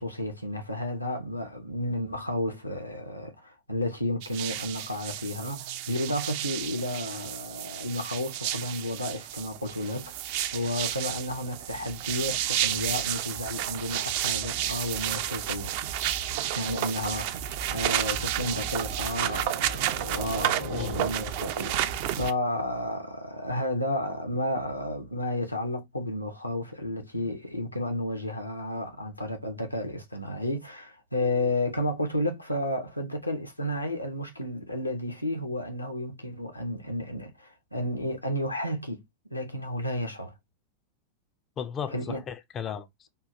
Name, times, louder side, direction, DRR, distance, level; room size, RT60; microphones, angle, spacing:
voice 1, 0.0-10.1 10.5-15.7 16.6-39.0 39.3-40.3 41.9-42.2, left 1 dB, 85° left, 0.7 m, -32 dB
sound 1, 4.2-22.3, right 11 dB, 50° right, 0.3 m, -31 dB
voice 2, 20.6-21.0 27.2-27.3 41.6-43.1, left 8 dB, 25° left, 0.3 m, -36 dB
3.6 x 2.3 x 2.6 m
figure-of-eight pair, 90°, 0 cm